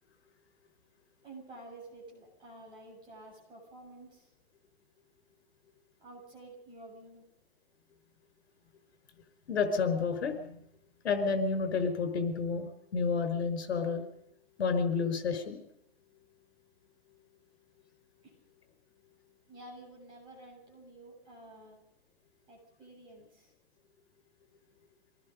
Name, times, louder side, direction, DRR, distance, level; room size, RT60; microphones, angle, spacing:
voice 1, 1.2-4.3 6.0-7.3 18.2-18.4 19.5-21.8 22.5-23.5, right 2 dB, 15° right, -2 dB, 7.4 m, -51 dB
voice 2, 9.5-10.6 11.0-12.7 12.9-14.0 14.6-15.6, left 5 dB, 70° left, 8 dB, 5.2 m, -30 dB
26.0 x 19.5 x 5.3 m, 0.77 s
hypercardioid pair, 175°, 33 cm